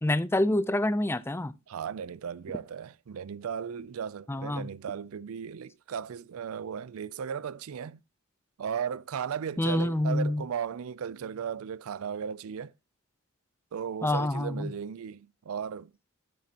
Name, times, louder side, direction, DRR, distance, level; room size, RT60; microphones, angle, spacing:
voice 1, 0.0-1.5 4.3-4.7 9.6-10.4 14.0-14.7, left 1 dB, 10° left, 0.4 m, -27 dB
voice 2, 1.7-8.0 8.6-12.7 13.7-15.9, right 7 dB, 70° right, 0.4 m, -36 dB
9.9 x 9.2 x 2.8 m
head